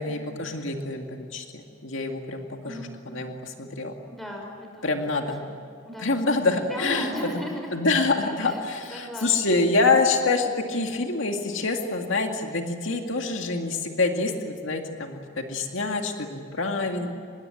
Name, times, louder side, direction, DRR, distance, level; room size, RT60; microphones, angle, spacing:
voice 1, 0.0-3.9 4.8-5.4 6.0-7.1 7.7-17.1, left 3 dB, 75° left, 3 dB, 2.2 m, -26 dB
voice 2, 2.6-3.0 4.1-5.0 5.4-5.6 5.8-7.8 8.2-8.6 8.9-9.5 16.6-17.1, equal, ahead, 0 dB, 5.6 m, -37 dB
25.5 x 21.0 x 9.9 m, 2.4 s
head